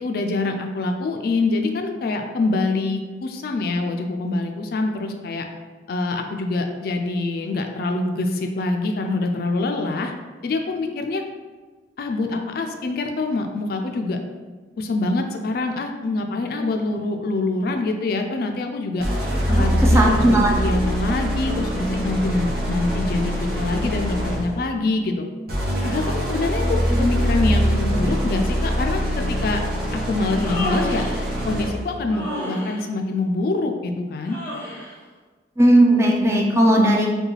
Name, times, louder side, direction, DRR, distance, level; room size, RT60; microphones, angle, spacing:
voice 1, 0.0-5.4 5.9-10.1 10.4-11.2 12.0-14.2 14.8-19.1 19.5-25.3 25.8-29.0 29.3-29.6 29.9-31.0 31.5-34.4, left 2 dB, 55° left, 4 dB, 0.3 m, -25 dB
sound 1, 19.0-24.6 25.5-31.9, equal, 55° right, 1.0 m, -23 dB
voice 2, 19.8-20.5 35.6-37.1, right 1 dB, 15° right, 0 dB, 0.4 m, -16 dB
Human voice, 30.2-31.3 32.1-32.8 34.3-35.0, left 1 dB, 10° left, 0.9 m, -30 dB
4.7 x 2.3 x 3.2 m, 1.3 s
head